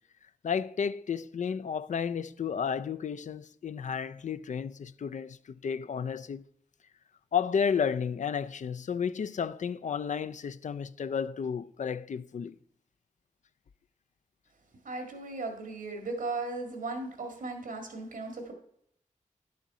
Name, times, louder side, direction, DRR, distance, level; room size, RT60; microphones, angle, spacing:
voice 1, 0.4-6.4 7.3-12.6, left 7 dB, 65° left, 0.4 m, -32 dB
voice 2, 14.8-18.5, right 3 dB, 90° right, 1.9 m, -36 dB
11.0 x 6.4 x 4.1 m
wide cardioid pair, 70°, 14 cm